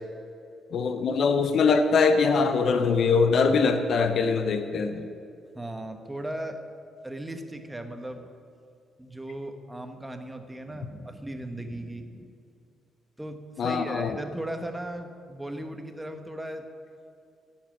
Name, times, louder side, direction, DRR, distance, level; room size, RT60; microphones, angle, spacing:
voice 1, 0.7-5.1 13.6-14.2, left 4 dB, 60° left, 8 dB, 0.8 m, -23 dB
voice 2, 5.5-6.6 7.0-8.3 9.0-12.3 13.2-16.6, right 1 dB, 10° right, 6 dB, 1.1 m, -37 dB
15.0 x 7.4 x 6.1 m, 2.5 s
cardioid pair, 90°, 0 cm